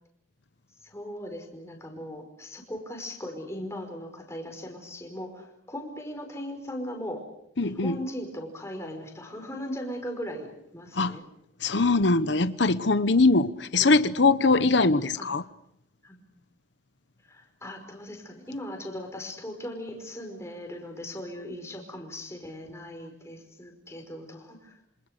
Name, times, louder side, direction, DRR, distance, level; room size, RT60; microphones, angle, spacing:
voice 1, 0.8-7.2 7.6-11.2 13.8-14.0 14.8-15.3 16.0-16.2 17.3-24.8, equal, 15° left, 5.1 m, -38 dB
voice 2, 7.6-8.0 11.0-11.2 11.6-15.4, left 3 dB, 65° left, 1.0 m, -22 dB
27.5 x 27.0 x 6.7 m
head